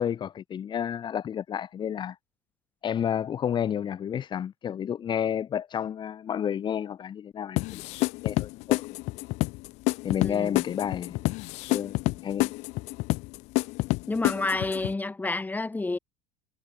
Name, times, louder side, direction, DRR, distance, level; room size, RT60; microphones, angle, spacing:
voice 1, 0.0-2.2 2.8-7.8 8.2-8.8 10.0-11.2 11.6-12.5, left 9 dB, 35° left, 2.1 m, -30 dB
sound 1, 7.6-14.9, left 23 dB, 55° left, 2.3 m, -28 dB
voice 2, 10.2-10.6 14.1-16.0, left 3 dB, 10° left, 3.0 m, -29 dB
figure-of-eight pair, 70°, 14 cm